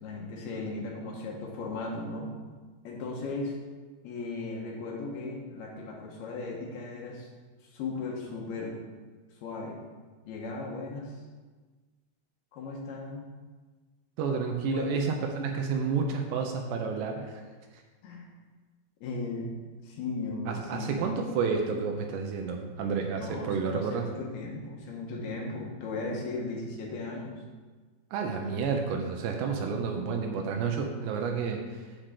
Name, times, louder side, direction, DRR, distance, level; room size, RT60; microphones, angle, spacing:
voice 1, 0.0-2.3 2.8-3.5 4.0-7.3 7.7-8.7 9.4-9.8 10.3-11.1 12.5-13.3 14.7-14.9 18.0-18.3 19.0-19.5 19.8-21.0 23.2-27.4, left 3 dB, 70° left, -1 dB, 3.0 m, -36 dB
voice 2, 14.2-17.4 20.5-24.1 28.1-31.9, right 5 dB, 80° right, 3 dB, 2.9 m, -30 dB
7.5 x 6.0 x 6.7 m, 1.4 s
omnidirectional pair, 5.0 m